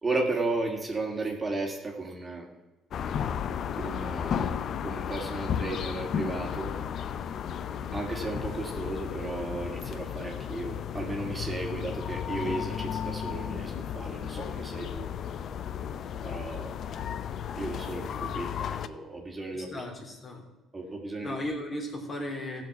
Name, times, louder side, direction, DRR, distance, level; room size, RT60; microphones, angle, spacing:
voice 1, 0.0-2.5 3.7-6.8 7.9-15.1 16.2-16.8 17.6-19.8 20.7-21.4, right 2 dB, 25° right, 1 dB, 2.4 m, -34 dB
sound 1, 2.9-18.9, left 8 dB, 60° left, 0.6 m, -34 dB
voice 2, 19.5-20.4 21.2-22.7, left 1 dB, 35° left, 1 dB, 3.3 m, -36 dB
15.5 x 5.3 x 7.0 m, 1.1 s
supercardioid pair, 80°, 0 cm